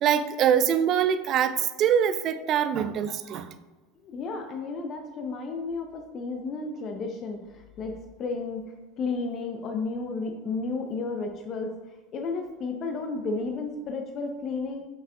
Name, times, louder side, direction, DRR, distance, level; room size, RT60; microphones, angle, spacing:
voice 1, 0.0-3.5, right 8 dB, 40° right, 11 dB, 0.4 m, -24 dB
voice 2, 4.0-8.6 9.0-11.8 12.1-14.8, left 3 dB, 35° left, 4 dB, 0.6 m, -32 dB
7.3 x 5.6 x 2.4 m, 1.2 s
figure-of-eight pair, 75°, 0 cm